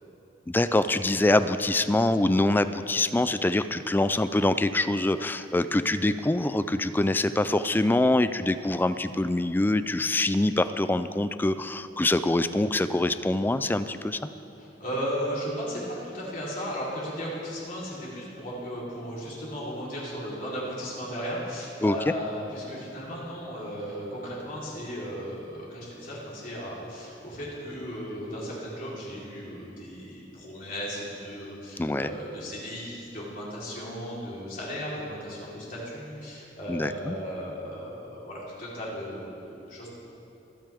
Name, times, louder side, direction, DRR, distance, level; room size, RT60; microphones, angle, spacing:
voice 1, 0.5-14.2 21.8-22.1 31.8-32.1 36.7-37.1, left 2 dB, 10° left, 12 dB, 0.3 m, -24 dB
voice 2, 14.6-39.9, equal, 50° left, -6 dB, 3.7 m, -36 dB
25.0 x 9.0 x 3.5 m, 2.9 s
head